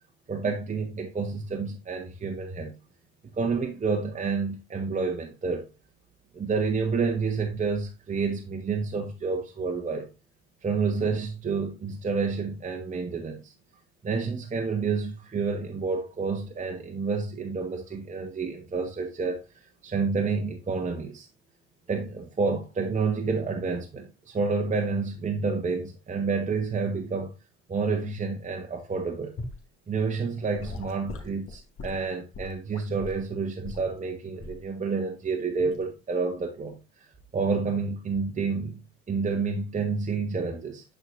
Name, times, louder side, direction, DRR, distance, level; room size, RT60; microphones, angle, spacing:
voice 1, 0.3-2.7 3.4-5.7 6.3-10.1 10.6-13.5 14.0-19.4 19.8-21.3 21.9-27.3 27.7-29.3 29.9-36.8 37.3-38.8 39.1-40.8, right 4 dB, 25° right, 1.3 m, -29 dB
Gurgling / Sink (filling or washing) / Liquid, 29.4-29.6 30.5-33.2 33.6-33.9 34.4-34.7 35.6-35.8, left 2 dB, 40° left, 2.1 m, -40 dB
10.5 x 4.9 x 2.6 m
hypercardioid pair, 70°, 32 cm